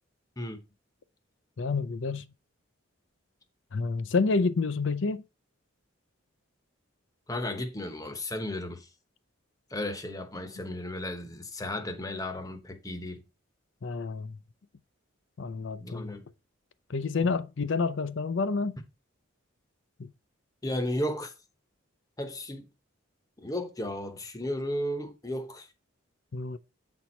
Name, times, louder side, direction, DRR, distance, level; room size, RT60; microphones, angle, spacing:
voice 1, 1.6-2.3 3.7-5.2 13.8-14.4 15.4-16.2 16.9-18.8 20.0-20.1 26.3-26.6, left 4 dB, 60° left, 0.5 m, -29 dB
voice 2, 7.3-8.9 9.7-13.2 15.8-16.2 20.6-21.3 22.2-22.6 23.4-25.7, left 1 dB, 15° left, 0.9 m, -34 dB
8.1 x 4.4 x 4.3 m
head